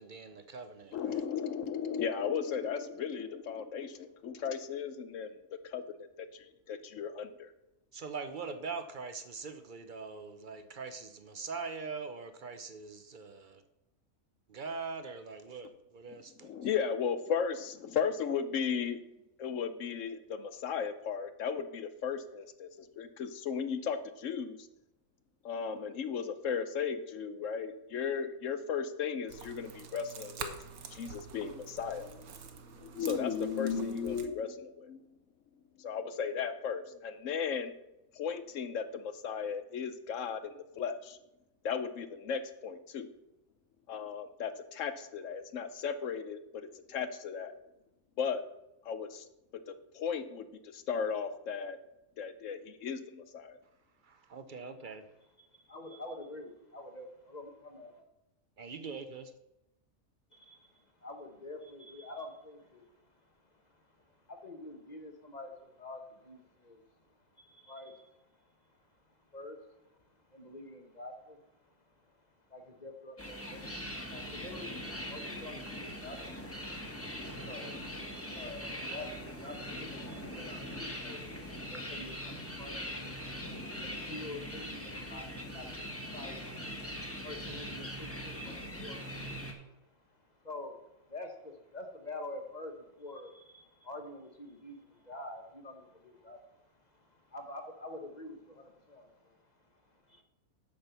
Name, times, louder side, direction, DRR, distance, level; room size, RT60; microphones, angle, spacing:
voice 1, 0.0-1.2 7.9-13.6 14.5-16.5 54.0-55.1 58.6-59.3, right 4 dB, 55° right, 9 dB, 0.5 m, -42 dB
voice 2, 0.9-5.3 5.7-5.8 6.2-6.3 6.7-7.5 16.4-19.0 19.4-22.7 23.0-24.6 25.4-30.6 30.9-32.2 32.8-35.1 35.8-37.7 38.1-41.2 41.6-43.1 43.9-47.5 48.2-48.4 48.8-49.2 49.7-50.5 50.7-51.8 52.2-53.6, left 6 dB, 65° left, 11 dB, 0.9 m, -35 dB
sound 1, 29.3-34.3, right 6 dB, 70° right, 1.4 m, -47 dB
voice 3, 55.4-58.0 60.3-100.2, left 2 dB, 30° left, 4 dB, 1.0 m, -48 dB
sound 2, 73.2-89.5, equal, 10° left, 1.3 m, -41 dB
8.7 x 5.9 x 6.7 m, 0.91 s
omnidirectional pair, 1.6 m